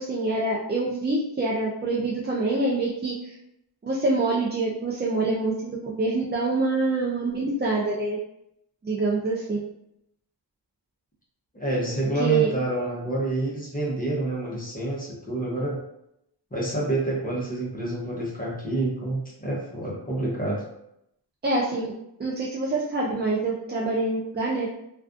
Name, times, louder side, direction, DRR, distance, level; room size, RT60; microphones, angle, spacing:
voice 1, 0.0-3.3 3.8-8.2 8.8-9.7 11.9-12.5 21.4-21.9 22.2-24.7, right 3 dB, 25° right, -5 dB, 0.4 m, -26 dB
voice 2, 11.5-15.8 16.5-20.6, right 2 dB, 20° left, -5 dB, 0.8 m, -28 dB
2.3 x 2.3 x 2.4 m, 0.78 s
wide cardioid pair, 90°, 44 cm